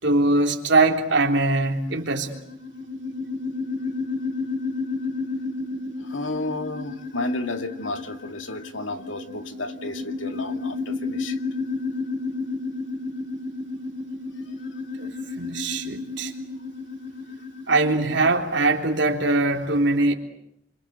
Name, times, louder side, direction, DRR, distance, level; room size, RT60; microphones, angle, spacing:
voice 1, 0.0-2.3 15.0-16.3 17.7-20.1, right 2 dB, 65° right, 3.6 m, -22 dB
sound 1, 1.9-18.3, left 3 dB, 50° left, 4.2 m, -32 dB
voice 2, 6.0-11.4, left 2 dB, 85° left, 2.3 m, -32 dB
28.5 x 25.5 x 8.2 m
head